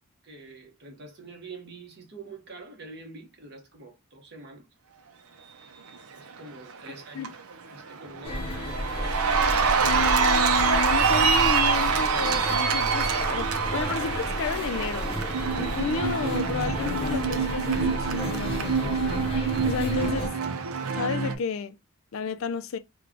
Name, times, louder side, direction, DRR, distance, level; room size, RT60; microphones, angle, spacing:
voice 1, 0.2-4.7 6.1-7.3 7.7-8.7, right 3 dB, 50° right, 1.0 m, -45 dB
Cheering, 6.5-6.9 7.2-21.4, right 6 dB, 85° right, 0.6 m, -26 dB
sound 1, 8.2-20.3, equal, 25° left, 0.7 m, -32 dB
voice 2, 9.8-15.1 15.5-19.0 19.6-20.4 20.9-21.7 22.1-22.8, left 6 dB, 65° left, 0.4 m, -32 dB
3.3 x 2.3 x 3.6 m
head